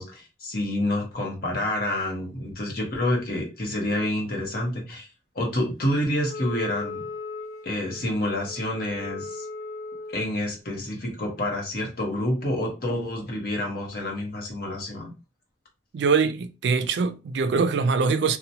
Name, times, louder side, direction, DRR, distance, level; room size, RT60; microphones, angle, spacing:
voice 1, 0.0-5.1 5.3-7.0 7.6-9.4 10.1-15.1, left 1 dB, 55° left, 0.9 m, -28 dB
Wind instrument woodwind instrument, 6.3-10.4, left 3 dB, 25° left, 1.0 m, -37 dB
voice 2, 15.9-18.4, right 5 dB, 70° right, 0.3 m, -23 dB
2.8 x 2.1 x 2.6 m
head